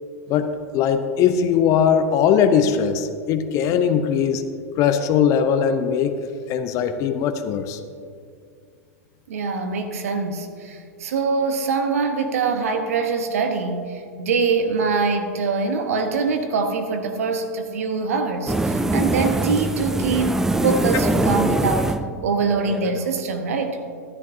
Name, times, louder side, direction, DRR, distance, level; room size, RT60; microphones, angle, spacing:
voice 1, 0.3-4.4 4.8-7.8, left 7 dB, 40° left, 9 dB, 0.7 m, -20 dB
voice 2, 9.3-22.0 22.2-23.8, right 4 dB, 65° right, 6 dB, 1.1 m, -23 dB
sound 1, 18.5-23.1, right 2 dB, 5° right, 0.3 m, -23 dB
13.0 x 12.5 x 2.8 m, 2.3 s
figure-of-eight pair, 95°, 8 cm